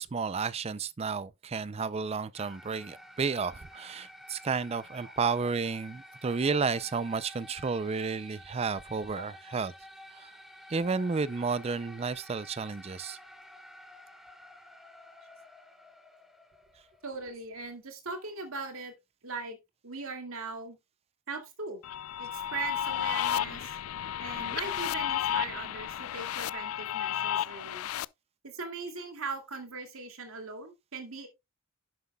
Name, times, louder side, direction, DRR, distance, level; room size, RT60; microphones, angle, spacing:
voice 1, 0.0-9.7 10.1-10.3 10.7-13.2, right 5 dB, 30° right, 0.4 m, -32 dB
sound 1, 2.3-17.6, equal, ahead, 2.7 m, -51 dB
voice 2, 17.0-18.9 19.2-19.6 19.8-20.8 21.3-21.8 22.2-23.8 24.2-27.9 28.4-31.3, right 4 dB, 85° right, 2.3 m, -39 dB
sound 2, 21.8-28.0, left 10 dB, 90° left, 0.3 m, -32 dB
11.0 x 7.6 x 2.3 m
head